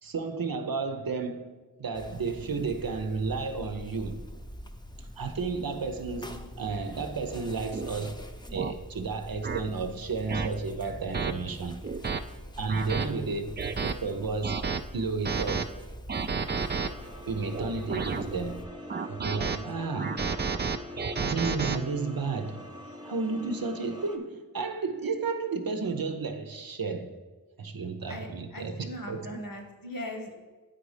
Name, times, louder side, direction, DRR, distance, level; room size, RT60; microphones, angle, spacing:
voice 1, 0.0-4.2 5.2-8.2 8.5-11.8 12.6-13.5 13.8-15.7 17.3-18.7 19.1-20.2 21.2-22.7 23.0-27.2 27.6-29.4, right 4 dB, 80° right, 0.7 m, -32 dB
sound 1, 1.9-18.7, equal, 10° left, 0.6 m, -44 dB
sound 2, 7.7-7.9 8.6-8.7 9.4-9.6 10.3-10.5 11.1-11.3 11.8-12.2 12.7-13.1 13.6-13.9 14.4-14.8 15.3-15.7 16.1-16.9 17.5-18.2 18.9-19.6 20.0-21.8, right 5 dB, 30° right, 0.4 m, -31 dB
voice 2, 12.6-13.2 19.5-19.9 20.1-20.3 28.1-30.3, equal, 75° left, 1.2 m, -41 dB
sound 3, 16.4-24.2, left 2 dB, 10° right, 1.0 m, -44 dB
8.8 x 4.1 x 4.9 m
wide cardioid pair, 45°, 35 cm